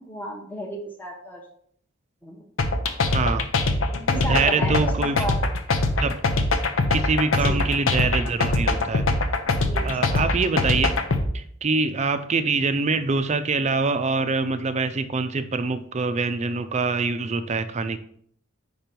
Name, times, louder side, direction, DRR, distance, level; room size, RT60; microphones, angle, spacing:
voice 1, 0.0-1.5 2.2-2.5 3.9-5.4 7.3-7.6 9.4-10.1, equal, 10° left, 0 dB, 0.9 m, -34 dB
sound 1, 2.6-11.2, left 3 dB, 65° left, 0.8 m, -22 dB
voice 2, 3.1-3.5 4.2-5.3 6.0-6.2 6.9-9.1 9.8-11.0 11.3-18.0, right 4 dB, 35° right, 10 dB, 0.4 m, -24 dB
5.3 x 4.5 x 5.2 m, 0.63 s
head